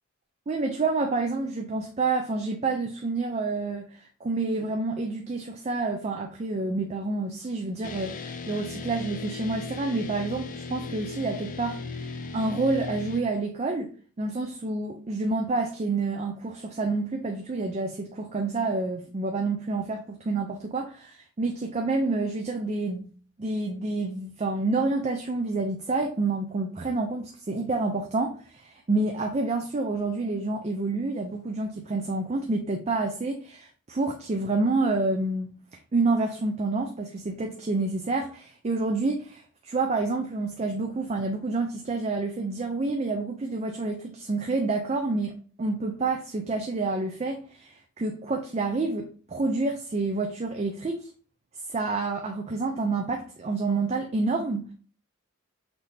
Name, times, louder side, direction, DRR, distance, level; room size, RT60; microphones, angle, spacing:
voice 1, 0.5-13.9 14.2-23.1 23.4-35.5 35.9-45.3 45.6-51.1 51.7-54.7, right 3 dB, 30° right, 0.4 m, -28 dB
sound 1, 7.8-13.2, left 4 dB, 35° left, 0.4 m, -37 dB
5.9 x 2.7 x 3.2 m
head